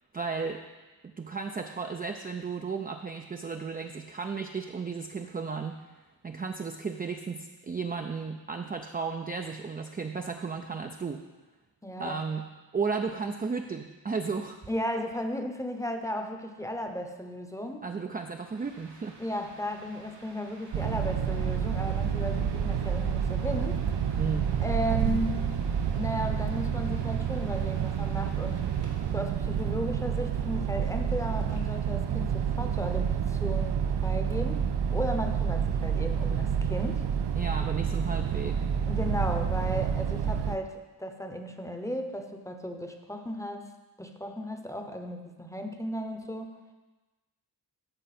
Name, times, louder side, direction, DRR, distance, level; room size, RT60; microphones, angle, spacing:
voice 1, 0.1-0.6 1.0-5.9 6.2-11.2 12.0-12.4 12.7-14.6 17.8-19.2 24.2-24.5 37.3-38.6, right 5 dB, 20° right, 4 dB, 0.4 m, -34 dB
voice 2, 11.8-12.2 14.7-17.9 19.2-23.8 24.6-25.5 25.9-28.6 29.1-34.7 34.9-37.0 38.9-43.7 44.0-46.6, equal, 5° left, 5 dB, 0.8 m, -35 dB
sound 1, 18.5-31.6, right 2 dB, 90° right, 1.8 m, -51 dB
sound 2, 20.7-40.6, right 8 dB, 70° right, 0.6 m, -29 dB
13.5 x 4.6 x 4.2 m, 1.2 s
wide cardioid pair, 90°, 42 cm